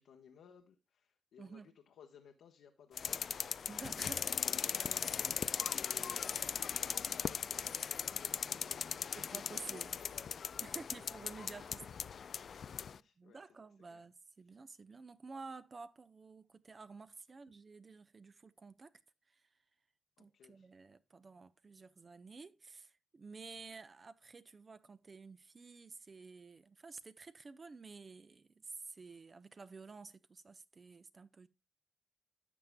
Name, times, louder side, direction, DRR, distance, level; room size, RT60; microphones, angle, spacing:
voice 1, 0.0-1.6 1.9-3.4 3.7-10.3 10.6-10.8 12.7-13.6 13.9-14.0 20.2-20.7, left 7 dB, 85° left, 1.2 m, -58 dB
voice 2, 1.4-1.7 3.7-4.3 5.2-5.4 6.0-6.2 7.8-7.9 9.1-9.9 10.6-12.1 12.9-18.9 19.3-19.5 20.2-31.5, right 4 dB, 35° right, 0.8 m, -52 dB
sound 1, 3.0-13.0, left 7 dB, 60° left, 0.4 m, -38 dB
12.5 x 7.4 x 2.2 m
cardioid pair, 90°, 0 cm